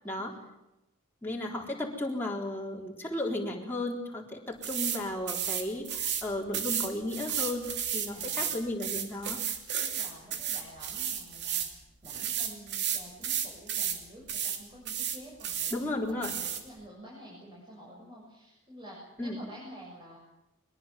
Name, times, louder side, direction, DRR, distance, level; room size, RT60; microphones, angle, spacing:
voice 1, 0.0-0.4 8.1-8.5 9.8-11.7 12.0-20.2, equal, 25° right, -4 dB, 7.1 m, -49 dB
voice 2, 1.2-7.7 7.9-9.4 15.7-16.3 19.2-19.4, left 1 dB, 10° left, -3 dB, 3.9 m, -34 dB
sound 1, 4.6-5.0 5.3-6.2 6.5-11.7 12.0-14.0 14.3-14.6 14.9-15.8 16.2-16.6, right 9 dB, 55° right, 2.8 m, -32 dB
22.0 x 22.0 x 7.5 m, 0.92 s
head